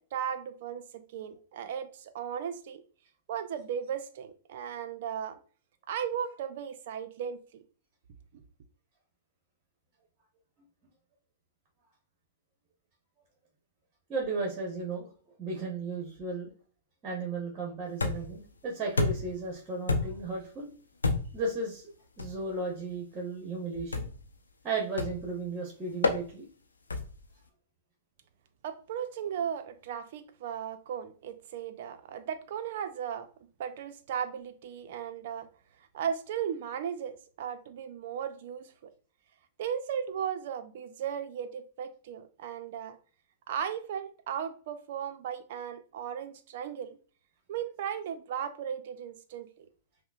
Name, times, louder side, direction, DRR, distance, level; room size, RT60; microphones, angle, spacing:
voice 1, 0.1-2.8 3.3-5.4 5.9-7.6 8.3-8.4 28.6-33.3 33.6-35.5 35.9-38.7 39.6-43.0 43.5-47.0 47.5-49.7, right 8 dB, 60° right, 0.5 m, -36 dB
voice 2, 14.1-15.1 15.4-16.5 17.0-20.7 21.3-21.9 22.2-24.1 24.6-26.5, right 3 dB, 30° right, 1.1 m, -34 dB
sound 1, 18.0-18.4 19.0-19.4 19.9-20.3 21.0-21.5 22.2-22.4 23.9-24.3 25.0-25.3 26.0-26.2 26.9-27.2, left 3 dB, 90° left, 0.5 m, -30 dB
5.5 x 2.1 x 2.4 m
hypercardioid pair, 110°, 0 cm